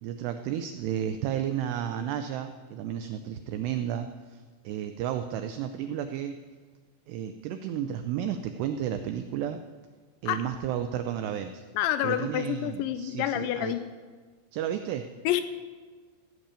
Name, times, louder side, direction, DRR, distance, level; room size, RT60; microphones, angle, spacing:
voice 1, 0.0-6.4 7.1-9.6 10.2-11.6 12.0-13.8 14.5-15.1, right 10 dB, 85° right, 8 dB, 2.4 m, -32 dB
voice 2, 11.8-13.9 15.3-15.4, left 12 dB, 85° left, 11 dB, 2.7 m, -28 dB
16.0 x 6.8 x 8.9 m, 1.5 s
omnidirectional pair, 5.5 m